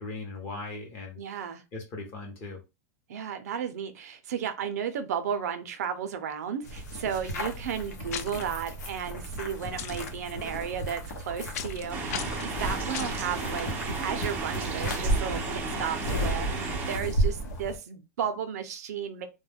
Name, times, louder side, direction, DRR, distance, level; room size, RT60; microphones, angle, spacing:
voice 1, 0.0-1.2 1.7-2.6, left 3 dB, 25° left, 0.8 m, -38 dB
voice 2, 1.2-1.6 3.1-19.3, right 8 dB, 70° right, 0.5 m, -34 dB
sound 1, 6.6-17.8, equal, 85° left, 0.9 m, -33 dB
sound 2, 8.1-8.4 9.8-10.1 11.5-11.8 12.1-12.5 12.9-13.3, left 9 dB, 65° left, 0.4 m, -36 dB
sound 3, 11.9-17.0, right 4 dB, 20° right, 0.4 m, -34 dB
2.2 x 2.1 x 3.3 m
supercardioid pair, 170°, 9 cm